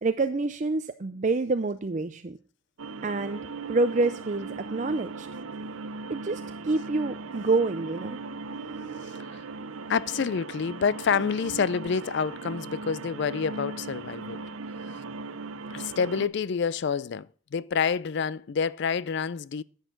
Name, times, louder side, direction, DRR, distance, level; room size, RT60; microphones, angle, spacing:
voice 1, 0.0-2.4 3.0-5.3 6.1-8.2, right 3 dB, 35° right, 0.5 m, -27 dB
sound 1, 2.8-16.3, right 4 dB, 85° right, 0.7 m, -38 dB
voice 2, 9.9-14.4 15.7-19.6, left 6 dB, 55° left, 0.4 m, -28 dB
11.0 x 8.2 x 3.8 m
head